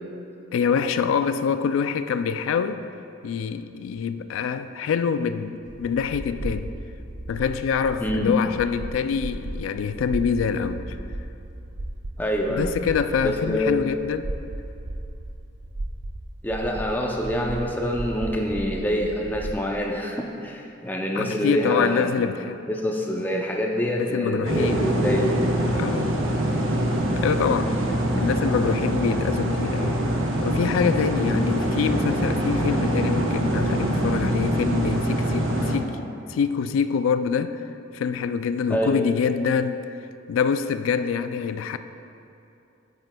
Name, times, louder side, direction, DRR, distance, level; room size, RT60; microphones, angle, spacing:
voice 1, 0.5-2.8 3.2-6.7 7.3-11.0 12.5-14.3 21.2-22.6 24.0-24.8 25.7-26.2 27.1-27.7 28.2-30.0 30.4-37.7 37.9-39.8 40.3-41.8, left 6 dB, 85° left, 11 dB, 0.3 m, -25 dB
sound 1, 5.6-19.7, right 1 dB, 60° right, 0.5 m, -36 dB
voice 2, 8.0-8.3 12.2-12.7 13.2-13.7 16.4-22.2 22.7-25.3 38.7-39.0, equal, 10° left, 0 dB, 0.4 m, -26 dB
sound 2, 24.4-35.8, right 1 dB, 90° right, 0.8 m, -24 dB
8.9 x 7.8 x 2.2 m, 2.7 s
head